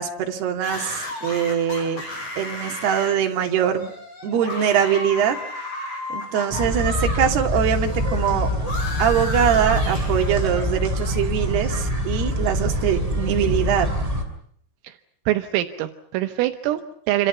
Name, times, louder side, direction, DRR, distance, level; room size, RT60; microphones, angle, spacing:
voice 1, 0.0-2.0 2.4-3.9 4.2-5.4 6.1-8.5 9.0-13.9, right 8 dB, 55° right, 4 dB, 4.4 m, -22 dB
sound 1, 0.6-7.2 7.5-10.7, left 2 dB, 30° left, 6.2 m, -34 dB
sound 2, 6.5-14.2, equal, 5° right, 4.9 m, -25 dB
voice 2, 15.3-17.3, right 14 dB, 80° right, 8 dB, 3.9 m, -24 dB
28.5 x 26.5 x 5.7 m, 0.64 s
omnidirectional pair, 6.0 m